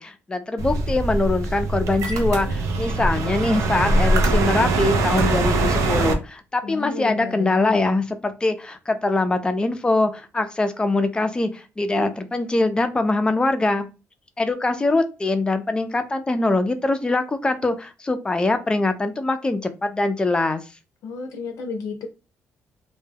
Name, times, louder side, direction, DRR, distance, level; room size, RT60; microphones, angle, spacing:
voice 1, 0.0-13.9 14.4-20.7, left 2 dB, 15° left, 8 dB, 0.4 m, -23 dB
sound 1, 0.6-6.1, right 2 dB, 80° right, 0.5 m, -22 dB
voice 2, 6.6-7.8 21.0-22.1, left 5 dB, 90° left, 4 dB, 0.5 m, -32 dB
2.2 x 2.1 x 3.2 m, 0.29 s
cardioid pair, 115°, 5 cm